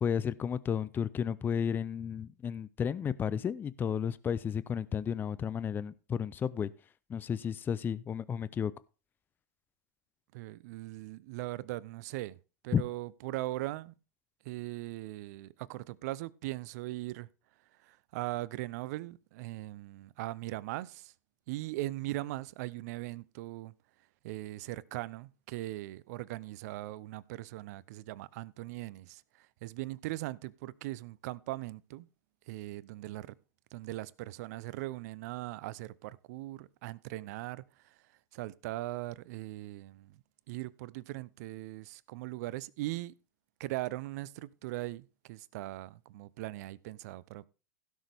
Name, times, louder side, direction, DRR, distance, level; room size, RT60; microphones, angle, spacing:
voice 1, 0.0-6.7 7.1-8.7 12.7-12.8, left 7 dB, 20° left, 0.5 m, -32 dB
voice 2, 10.3-12.4 12.6-13.9 14.4-17.3 17.7-21.1 21.5-23.7 24.2-32.1 32.5-33.3 33.7-43.1 43.6-47.5, right 17 dB, 60° right, 0.6 m, -40 dB
16.5 x 6.4 x 3.5 m
hypercardioid pair, 115°, 10 cm